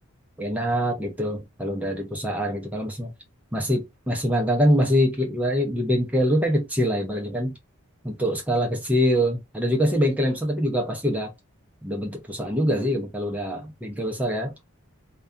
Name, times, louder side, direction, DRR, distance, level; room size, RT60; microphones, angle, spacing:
voice 1, 0.4-3.1 3.5-7.6 8.0-11.3 11.8-14.5, equal, 5° right, 0.4 m, -24 dB
2.6 x 2.2 x 2.3 m
head